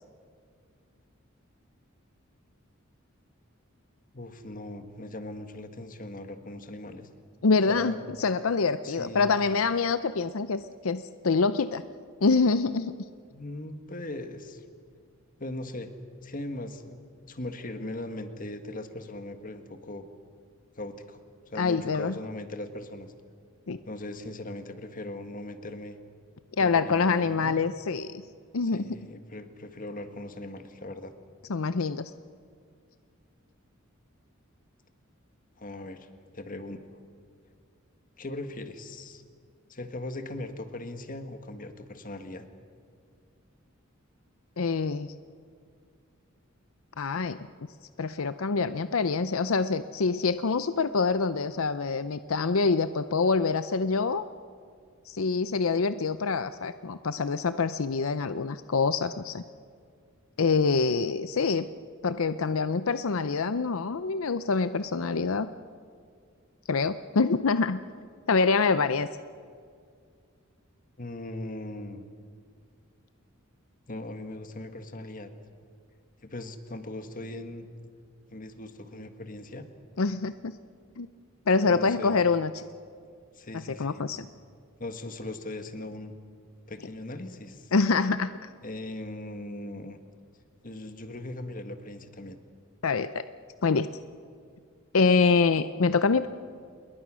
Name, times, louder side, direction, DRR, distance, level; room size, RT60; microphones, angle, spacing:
voice 1, 4.1-7.1 7.7-8.0 8.8-9.3 13.3-14.6 15.4-15.9 16.2-20.0 20.8-21.2 21.5-23.1 23.9-26.0 26.6-27.6 28.7-31.1 35.6-36.1 36.3-37.0 38.2-39.2 39.7-42.4 71.0-72.0 73.9-75.3 76.2-77.7 78.3-79.7 81.6-82.2 83.3-84.0 84.8-86.1 86.7-87.7 88.6-90.0 90.6-92.4 95.9-96.0, left 1 dB, 40° left, 8 dB, 1.7 m, -39 dB
voice 2, 7.4-11.8 12.2-12.9 21.6-22.1 23.7-23.8 26.6-28.2 28.5-29.0 31.5-32.1 44.6-45.1 47.0-47.4 48.0-54.3 55.1-59.4 60.4-61.7 62.0-65.5 66.7-67.8 68.3-69.1 80.0-80.5 81.0-81.1 81.5-82.6 83.5-84.3 87.7-88.5 92.8-93.2 93.6-93.9 94.9-96.3, left 4 dB, 80° left, 12 dB, 0.6 m, -25 dB
28.0 x 22.0 x 6.3 m, 2.2 s
head